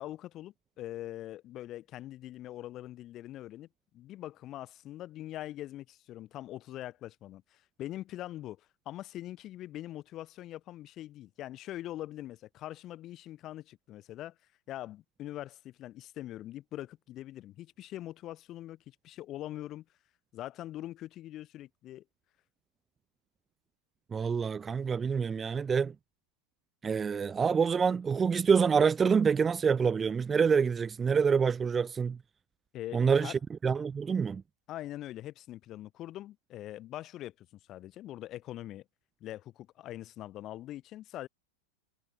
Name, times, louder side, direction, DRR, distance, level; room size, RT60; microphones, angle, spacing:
voice 1, 0.0-3.7 3.9-14.3 14.7-19.8 20.3-22.0 32.7-33.3 34.7-38.8 39.2-41.3, left 14 dB, 35° left, 6.8 m, -43 dB
voice 2, 24.1-25.9 26.8-32.2 32.9-34.4, right 6 dB, 20° right, 1.1 m, -27 dB
figure-of-eight pair, 90°, 0 cm